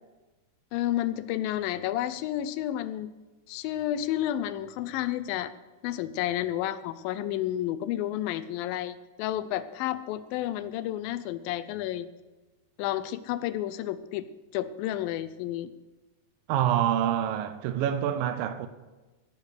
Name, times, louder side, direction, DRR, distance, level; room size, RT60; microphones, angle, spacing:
voice 1, 0.7-3.1 3.5-5.5 5.8-12.1 12.8-14.3 14.5-15.7, left 12 dB, 80° left, 2.3 m, -31 dB
voice 2, 16.5-18.7, right 10 dB, 80° right, 2.4 m, -26 dB
17.5 x 6.8 x 6.4 m
omnidirectional pair, 4.2 m